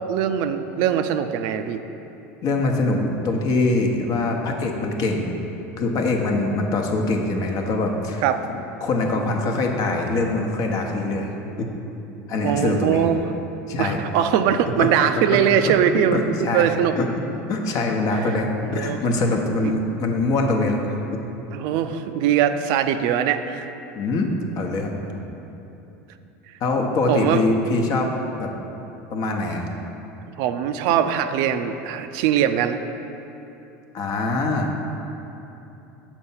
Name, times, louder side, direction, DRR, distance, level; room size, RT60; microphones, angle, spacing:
voice 1, 0.1-1.8 8.2-8.4 12.4-13.2 13.8-17.0 18.3-18.4 18.6-19.0 19.6-19.7 21.5-23.7 27.1-27.4 30.4-32.8, right 9 dB, 65° right, 9 dB, 0.4 m, -21 dB
voice 2, 2.4-5.3 5.8-8.2 8.8-11.3 11.6-11.7 12.3-13.0 13.7-14.0 14.8-15.4 15.7-15.8 16.1-16.7 17.0-17.1 17.5-21.0 23.9-25.0 26.6-28.1 28.4-28.5 29.1-29.6 33.9-34.7, left 2 dB, 50° left, 2 dB, 0.9 m, -23 dB
7.0 x 4.4 x 5.6 m, 3.0 s
hypercardioid pair, 95°, 8 cm